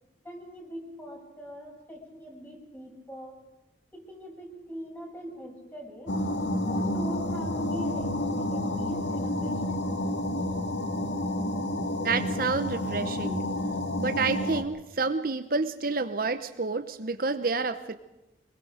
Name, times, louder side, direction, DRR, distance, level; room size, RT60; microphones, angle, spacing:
voice 1, 0.2-3.4 3.9-6.2 6.6-9.9, equal, 10° left, 0 dB, 6.6 m, -42 dB
sound 1, 6.1-14.6, left 1 dB, 85° left, 2.1 m, -30 dB
voice 2, 12.0-13.5 14.0-17.9, right 4 dB, 55° right, 9 dB, 0.9 m, -29 dB
25.5 x 22.0 x 5.1 m, 0.99 s
head